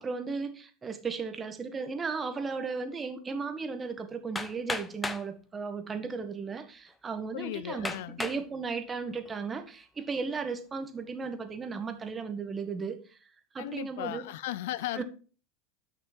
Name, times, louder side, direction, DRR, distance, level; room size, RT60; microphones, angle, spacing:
voice 1, 0.0-13.2 13.5-14.3 14.9-15.0, right 5 dB, 25° right, 1.7 m, -35 dB
Hammer, 4.4-5.3 6.2-6.3 6.9-7.0 7.8-8.4 9.0-9.5, left 3 dB, 15° left, 0.9 m, -35 dB
voice 2, 7.3-8.2 13.6-15.0, left 14 dB, 75° left, 0.4 m, -36 dB
9.2 x 6.2 x 4.5 m
hypercardioid pair, 85°, 0 cm